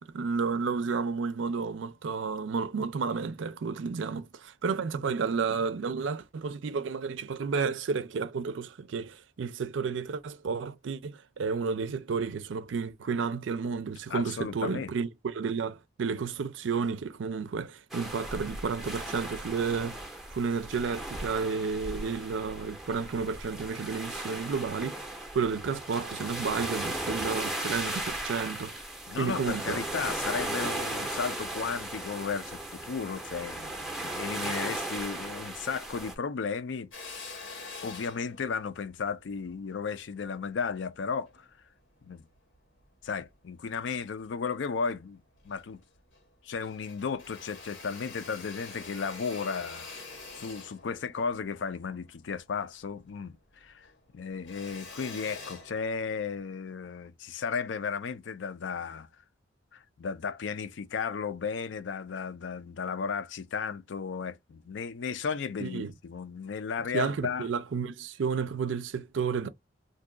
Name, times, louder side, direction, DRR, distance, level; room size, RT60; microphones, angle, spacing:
voice 1, 0.0-25.0 25.3-28.8 29.2-29.9 65.6-65.9 66.9-69.5, right 5 dB, 75° right, 0.4 m, -31 dB
voice 2, 14.1-14.9 29.1-36.9 37.8-41.5 42.1-42.2 43.0-45.8 46.4-49.9 50.4-53.9 54.1-59.1 59.7-67.5, left 5 dB, 70° left, 0.4 m, -34 dB
sound 1, 17.9-36.2, right 1 dB, ahead, 0.5 m, -36 dB
Drill, 36.9-41.4 42.0-43.2 43.6-44.6 44.9-45.0 45.3-46.3 46.5-53.2 53.5-56.4, left 3 dB, 90° left, 1.3 m, -46 dB
2.6 x 2.3 x 3.7 m
head